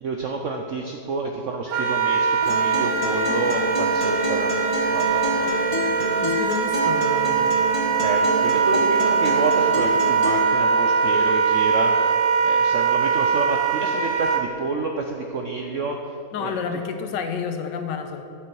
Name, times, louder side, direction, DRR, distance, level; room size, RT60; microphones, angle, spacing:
voice 1, 0.0-4.5 4.9-6.2 8.0-12.0 12.4-16.0 16.4-16.5, right 3 dB, 70° right, 2 dB, 0.7 m, -29 dB
Wind instrument woodwind instrument, 1.7-14.4, right 6 dB, 85° right, 1.5 m, -21 dB
Acoustic guitar, 2.4-10.4, left 1 dB, 30° left, 0.5 m, -28 dB
voice 2, 6.1-7.7 16.3-18.2, left 6 dB, 80° left, 7 dB, 1.3 m, -30 dB
10.5 x 7.5 x 4.7 m, 2.7 s
omnidirectional pair, 2.0 m